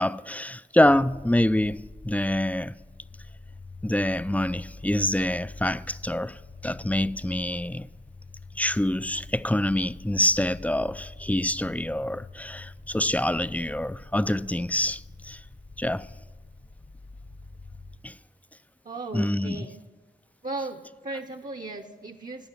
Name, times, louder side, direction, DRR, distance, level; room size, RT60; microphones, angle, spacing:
voice 1, 0.0-1.8 2.0-2.7 3.8-7.9 8.6-15.4 15.8-16.1 18.0-18.2 19.1-19.7, left 1 dB, 10° left, 0.3 m, -26 dB
sound 1, 0.8-18.0, left 3 dB, 65° left, 1.1 m, -45 dB
voice 2, 18.8-19.8 20.4-22.5, right 2 dB, 45° right, 0.8 m, -36 dB
16.0 x 6.2 x 9.7 m
wide cardioid pair, 55°, 18 cm